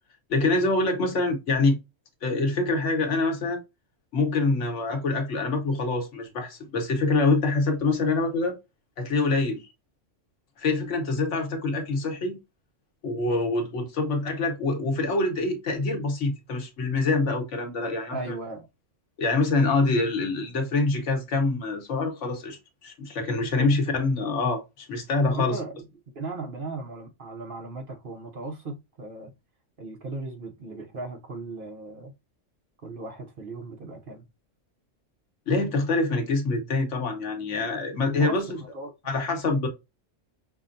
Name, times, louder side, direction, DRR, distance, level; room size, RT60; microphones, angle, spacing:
voice 1, 0.3-1.8 2.2-3.6 4.1-8.5 9.0-9.6 10.6-12.4 13.0-18.3 19.2-25.6 35.5-38.4 39.0-39.7, left 3 dB, 70° left, 1.3 m, -25 dB
voice 2, 18.1-18.7 23.6-23.7 25.3-25.7 26.1-29.3 29.8-32.1 32.8-34.3 38.1-38.9, right 3 dB, 50° right, 0.9 m, -37 dB
5.7 x 2.2 x 2.5 m
omnidirectional pair, 1.3 m